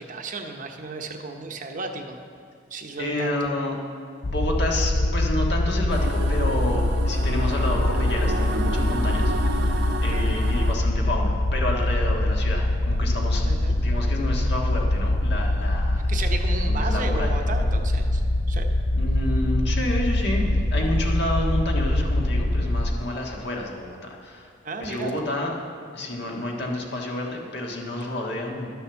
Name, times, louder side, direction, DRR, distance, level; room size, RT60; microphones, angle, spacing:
voice 1, 0.0-2.2 2.7-3.5 13.4-13.8 16.1-18.2 18.5-18.7 24.6-25.1, right 3 dB, 45° right, 4 dB, 0.8 m, -34 dB
voice 2, 3.0-3.8 4.2-13.4 13.8-16.0 16.6-17.4 18.9-24.5 24.8-25.5 25.9-28.7, left 1 dB, 60° left, 0 dB, 1.6 m, -29 dB
sound 1, 4.2-22.9, left 1 dB, 35° left, 0.4 m, -23 dB
sound 2, 5.9-10.7, right 2 dB, 70° right, 0.9 m, -32 dB
11.5 x 7.0 x 7.0 m, 2.3 s
head